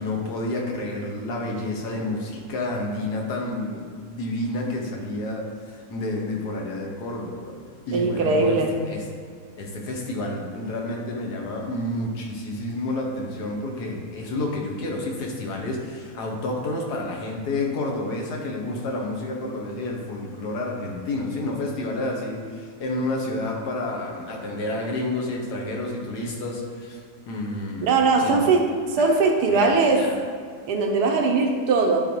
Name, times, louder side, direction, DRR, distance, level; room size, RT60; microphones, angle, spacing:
voice 1, 0.0-7.6 7.9-9.0 9.6-27.0 27.3-27.9 28.2-28.6 28.9-29.2 29.5-30.1, left 2 dB, 90° left, 0 dB, 1.6 m, -30 dB
voice 2, 7.9-8.8 27.8-30.1 30.7-32.0, right 3 dB, 90° right, 2 dB, 1.3 m, -20 dB
10.5 x 3.9 x 3.1 m, 2.1 s
omnidirectional pair, 1.7 m